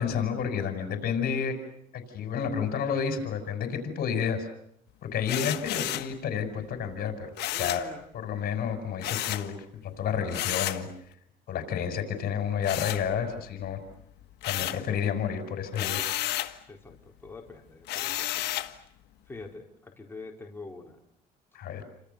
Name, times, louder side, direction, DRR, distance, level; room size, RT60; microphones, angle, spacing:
voice 1, 0.0-1.6 1.9-4.5 5.0-7.3 7.6-7.9 8.1-10.9 11.5-13.8 14.4-16.1 21.5-21.8, left 7 dB, 60° left, 8 dB, 5.8 m, -30 dB
sound 1, 5.3-6.1 7.4-7.9 9.0-9.5 10.3-10.9 12.6-13.5 13.9-14.9 15.7-16.6 17.9-18.8, left 15 dB, 80° left, 1.6 m, -32 dB
voice 2, 7.5-8.3 11.5-11.7 14.9-15.0 16.7-18.4 19.3-21.0, left 3 dB, 15° left, 1 dB, 4.4 m, -45 dB
29.5 x 26.5 x 6.9 m, 0.72 s
cardioid pair, 110°, 17 cm